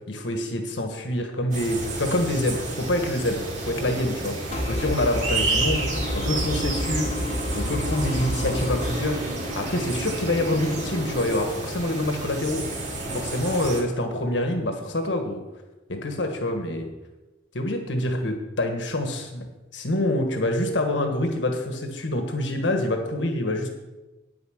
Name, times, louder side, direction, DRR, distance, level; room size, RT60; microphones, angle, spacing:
voice 1, 0.1-4.4 4.7-5.9 6.1-7.1 7.5-9.2 9.5-12.7 13.1-15.4 15.9-16.9 17.5-23.7, left 1 dB, 80° left, 5 dB, 1.4 m, -26 dB
sound 1, 1.5-13.8, right 2 dB, 40° right, 2.5 m, -31 dB
sound 2, 4.5-8.9, equal, 35° left, 1.0 m, -30 dB
sound 3, 5.9-11.2, equal, 80° right, 3.2 m, -37 dB
9.4 x 9.2 x 6.4 m, 1.1 s
head